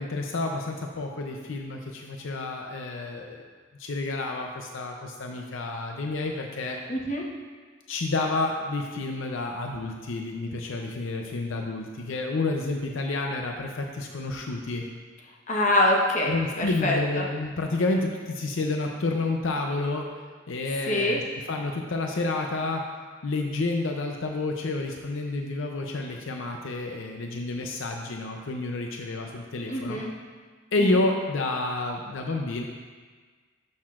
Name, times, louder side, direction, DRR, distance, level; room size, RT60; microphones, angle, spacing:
voice 1, 0.0-3.4 3.8-6.8 7.9-14.9 16.3-20.1 20.5-21.2 21.5-22.8 23.2-30.0 30.7-32.6, left 2 dB, 70° left, 2 dB, 0.6 m, -29 dB
voice 2, 6.9-7.2 15.5-17.2 20.9-21.2 29.7-30.1 30.8-30.9, left 1 dB, 35° left, -1 dB, 0.9 m, -25 dB
11.5 x 6.4 x 2.5 m, 1.5 s
head